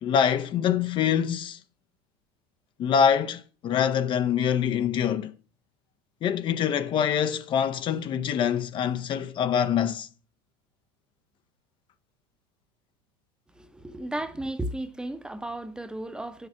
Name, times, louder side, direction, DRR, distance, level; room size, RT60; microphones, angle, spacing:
voice 1, 0.0-1.6 2.8-5.3 6.2-10.1, left 8 dB, 40° left, 0.8 m, -25 dB
voice 2, 13.6-16.5, right 1 dB, 5° right, 1.0 m, -34 dB
8.7 x 6.7 x 5.7 m
supercardioid pair, 110°, 13 cm